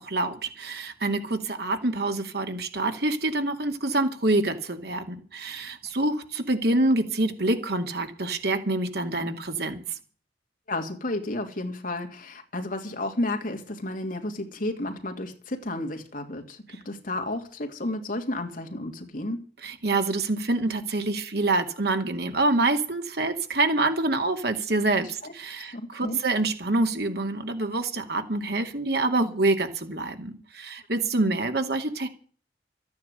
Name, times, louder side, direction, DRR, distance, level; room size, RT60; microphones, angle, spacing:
voice 1, 0.0-9.8 19.6-32.1, right 2 dB, 65° right, 2.4 m, -26 dB
voice 2, 10.7-19.4 25.2-25.3 25.6-26.2, left 1 dB, 50° left, 2.6 m, -32 dB
13.5 x 9.5 x 8.2 m
head